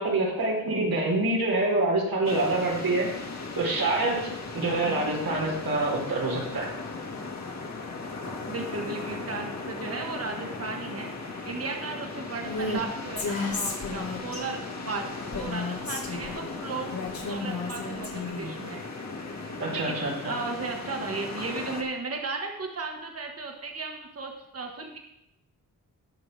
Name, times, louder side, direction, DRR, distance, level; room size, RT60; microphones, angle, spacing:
voice 1, 0.0-3.1 3.6-6.7 19.6-20.3, right 2 dB, 85° right, -2 dB, 3.6 m, -26 dB
sound 1, 2.2-21.8, left 3 dB, 50° left, 1.7 m, -37 dB
voice 2, 4.8-5.1 8.5-11.1 11.4-16.9 17.3-18.8 19.7-20.0 20.3-25.0, right 3 dB, 40° right, 2 dB, 1.5 m, -35 dB
Female speech woman speaking, 12.4-12.8 13.2-14.4 15.3-16.4 16.9-18.5, left 3 dB, 75° left, 2.5 m, -33 dB
18.5 x 6.4 x 3.3 m, 0.83 s
wide cardioid pair, 120°, 35 cm